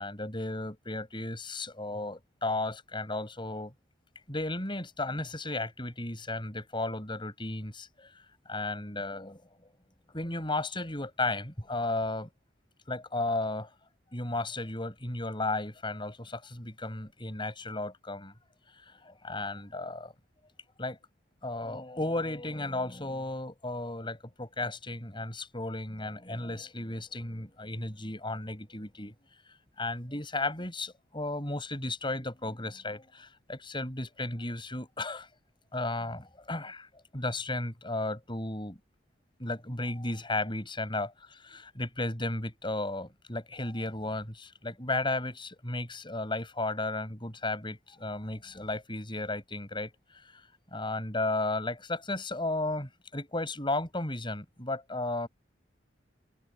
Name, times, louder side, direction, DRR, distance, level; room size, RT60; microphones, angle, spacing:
voice 1, 0.0-3.7 4.3-8.1 8.5-9.4 10.1-12.3 12.9-13.7 14.1-18.3 19.0-20.1 20.8-21.0 21.4-29.1 29.8-35.3 35.7-36.9 37.1-38.8 39.4-41.1 41.4-49.9 50.3-50.4 50.7-55.3, left 2 dB, 25° left, 7.1 m, -34 dB
head